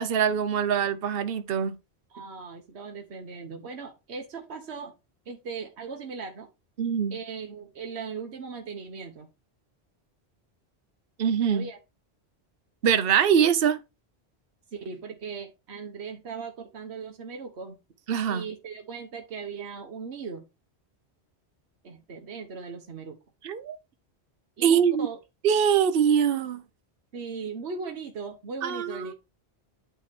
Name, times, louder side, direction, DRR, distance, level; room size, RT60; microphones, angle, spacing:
voice 1, 0.0-1.7 6.8-7.2 11.2-11.6 12.8-13.8 18.1-18.4 23.4-23.8 24.6-25.1 25.4-26.6 28.6-29.1, right 8 dB, 65° right, 1.0 m, -23 dB
voice 2, 2.1-4.9 5.3-6.5 7.1-9.3 11.5-11.8 14.7-17.8 18.3-20.5 21.8-23.2 24.6-25.2 27.1-29.1, right 5 dB, 80° right, 1.3 m, -38 dB
9.1 x 3.1 x 5.9 m
omnidirectional pair, 1.1 m